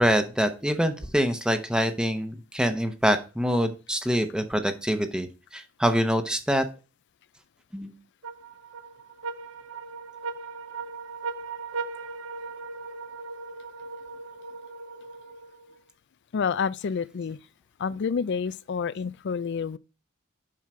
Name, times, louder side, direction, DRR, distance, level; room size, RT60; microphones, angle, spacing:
voice 1, 0.0-5.3 5.5-6.7 7.7-7.9, equal, 5° right, 0.8 m, -25 dB
sound 1, 8.2-15.8, right 4 dB, 70° right, 0.9 m, -38 dB
voice 2, 16.3-17.4 17.8-19.8, left 6 dB, 55° left, 0.4 m, -28 dB
7.5 x 5.6 x 4.8 m
head